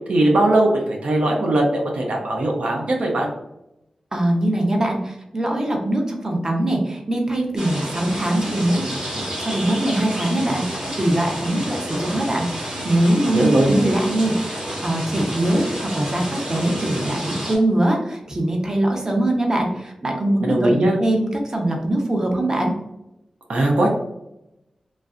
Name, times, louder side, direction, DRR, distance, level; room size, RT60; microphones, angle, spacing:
voice 1, 0.1-3.3 13.3-13.7 20.4-21.0 23.5-23.9, right 1 dB, 80° right, 0 dB, 0.6 m, -19 dB
voice 2, 4.1-8.9 9.1-15.6 15.9-22.7, right 1 dB, 30° right, 1 dB, 0.7 m, -22 dB
sound 1, 7.6-17.6, equal, 50° right, 1.2 m, -30 dB
3.2 x 2.5 x 2.4 m, 0.87 s
wide cardioid pair, 65°, 2 cm